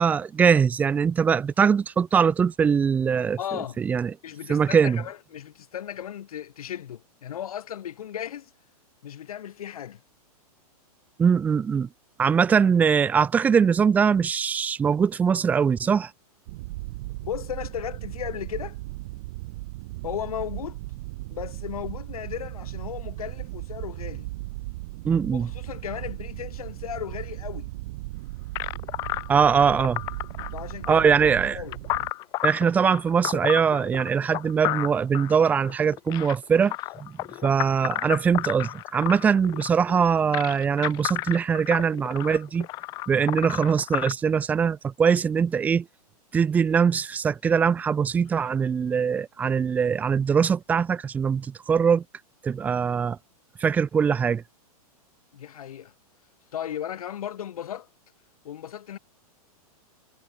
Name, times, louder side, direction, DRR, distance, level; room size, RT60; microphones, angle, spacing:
voice 1, 0.0-3.4 3.8-4.1 4.5-5.0 11.2-11.9 12.2-16.1 25.0-25.5 29.3-30.0 30.9-31.6 32.4-36.7 37.0-37.1 37.4-42.7 43.1-45.8 46.3-52.0 52.4-53.2 53.6-54.4, right 6 dB, 10° right, 1.1 m, -22 dB
voice 2, 3.4-3.8 4.2-8.5 9.0-10.0 17.2-18.8 20.0-20.8 21.3-24.3 25.3-27.7 30.5-31.1 31.5-31.8 55.3-55.9 56.5-57.9 58.4-59.0, left 10 dB, 65° left, 6.0 m, -35 dB
sound 1, 16.5-32.1, right 20 dB, 35° right, 4.5 m, -37 dB
sound 2, 28.6-44.1, left 19 dB, 20° left, 1.6 m, -32 dB
supercardioid pair, 180°, 20 cm